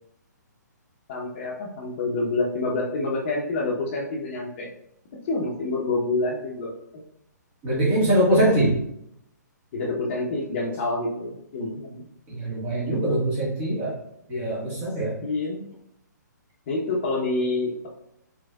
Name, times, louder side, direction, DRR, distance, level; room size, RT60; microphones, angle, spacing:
voice 1, 1.1-4.7 5.2-6.7 9.7-12.0 15.2-15.7 16.7-17.9, left 2 dB, 40° left, -3 dB, 0.9 m, -27 dB
voice 2, 7.6-8.8 12.3-13.9 14.3-15.1, right 1 dB, 30° right, -7 dB, 1.6 m, -22 dB
5.0 x 3.3 x 2.3 m, 0.75 s
figure-of-eight pair, 135°, 10 cm